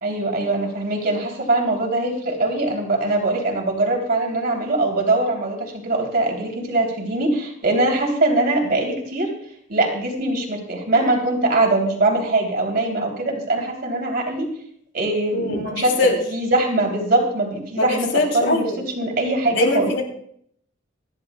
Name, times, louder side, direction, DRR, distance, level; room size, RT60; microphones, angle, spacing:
voice 1, 0.0-9.3 9.7-14.5 14.9-15.9 16.3-18.6 18.9-19.9, right 2 dB, 50° right, 1 dB, 3.2 m, -22 dB
voice 2, 15.3-16.2 17.8-18.8 19.5-20.0, left 2 dB, 65° left, 2 dB, 3.2 m, -22 dB
27.5 x 11.5 x 2.3 m, 0.67 s
head